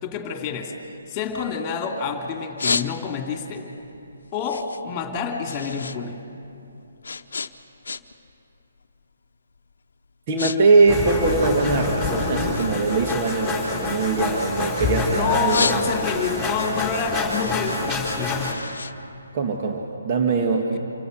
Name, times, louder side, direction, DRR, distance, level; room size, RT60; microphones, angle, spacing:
voice 1, 0.0-0.7 1.1-3.7 4.3-6.2 15.1-18.5 20.7-20.8, left 6 dB, 25° left, 3 dB, 2.9 m, -28 dB
sound 1, 0.8-2.0 2.3-3.4 3.8-6.0 6.3-8.3 8.6-9.0 9.6-9.7 10.0-10.6 10.8-12.1 12.5-14.9 15.3-16.3 16.7-19.8, left 4 dB, 65° left, 0.8 m, -31 dB
voice 2, 10.3-15.9 19.3-20.8, right 3 dB, 35° right, 2 dB, 1.8 m, -21 dB
sound 2, 10.9-18.5, left 3 dB, ahead, 4.2 m, -27 dB
27.0 x 14.5 x 8.0 m, 2.7 s
figure-of-eight pair, 145°, 0 cm